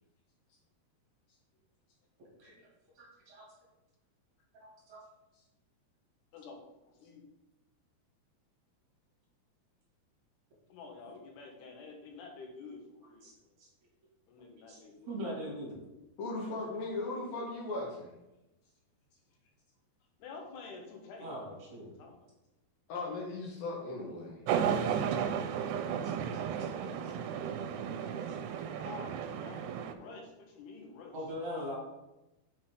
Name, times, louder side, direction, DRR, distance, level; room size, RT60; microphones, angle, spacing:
voice 1, 3.0-3.5 4.6-5.0 13.2-13.3 13.6-13.7 14.7-15.8 21.2-22.0 24.6-25.0 26.0-26.4 31.1-31.8, equal, 45° right, -5 dB, 3.7 m, -42 dB
voice 2, 6.9-7.2 10.7-13.5 14.3-15.2 20.2-21.3 22.0-22.3 28.8-31.1, left 4 dB, 85° left, 1 dB, 3.3 m, -49 dB
voice 3, 16.2-18.1 22.9-24.4, left 2 dB, 70° left, -2 dB, 3.1 m, -37 dB
sound 1, 24.5-29.9, right 8 dB, 85° right, 2.6 m, -34 dB
7.3 x 7.2 x 3.7 m, 0.96 s
omnidirectional pair, 4.6 m